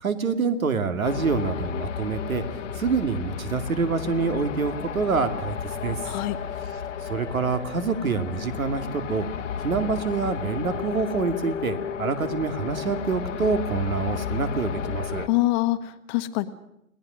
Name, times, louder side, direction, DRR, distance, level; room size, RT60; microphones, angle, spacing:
voice 1, 0.0-2.4 2.8-5.6 5.8-6.0 7.1-9.3 9.6-15.3, right 5 dB, 75° right, 9 dB, 2.5 m, -26 dB
sound 1, 1.0-15.3, left 8 dB, 60° left, 1.5 m, -33 dB
voice 2, 6.0-6.4 15.3-16.5, left 17 dB, 30° left, 11 dB, 1.3 m, -25 dB
30.0 x 18.5 x 6.4 m, 0.80 s
figure-of-eight pair, 120°, 42 cm